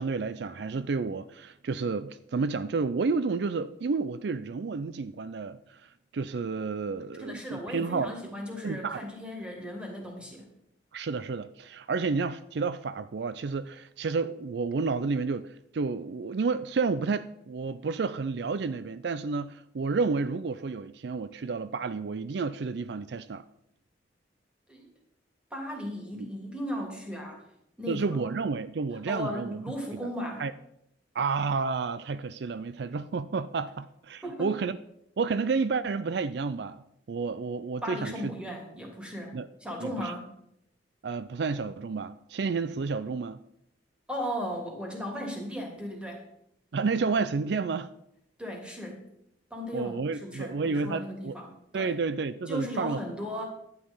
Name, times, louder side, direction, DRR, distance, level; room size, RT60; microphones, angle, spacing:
voice 1, 0.0-8.1 8.6-9.0 10.9-23.4 26.2-26.3 27.9-29.6 30.4-30.5 31.1-34.8 35.2-38.3 39.3-39.5 39.8-40.1 41.0-43.4 46.7-47.9 49.7-51.4 51.7-53.0, right 4 dB, 65° right, 0.4 m, -30 dB
voice 2, 7.2-10.5 24.7-24.9 25.5-27.4 27.8-28.2 29.1-30.4 34.2-34.5 37.8-39.3 39.6-40.3 44.1-46.2 48.4-49.0 49.5-51.9 52.5-53.4, equal, 5° right, 2.9 m, -36 dB
11.5 x 9.4 x 5.5 m
head